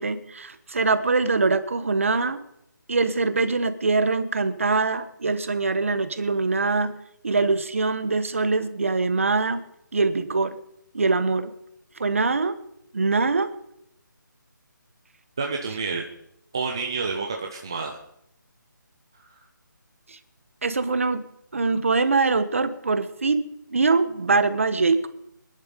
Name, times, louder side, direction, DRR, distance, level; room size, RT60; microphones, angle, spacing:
voice 1, 0.0-2.4 2.9-6.9 7.2-9.6 9.9-10.6 10.9-11.5 12.0-12.6 12.9-13.5 20.6-21.2 21.5-23.4 23.7-25.1, right 3 dB, 40° right, 11 dB, 1.3 m, -23 dB
voice 2, 15.4-16.1 16.5-18.0 19.2-19.3, right 4 dB, 15° right, 1 dB, 0.6 m, -29 dB
24.0 x 11.0 x 5.2 m, 0.77 s
hypercardioid pair, 180°, 11 cm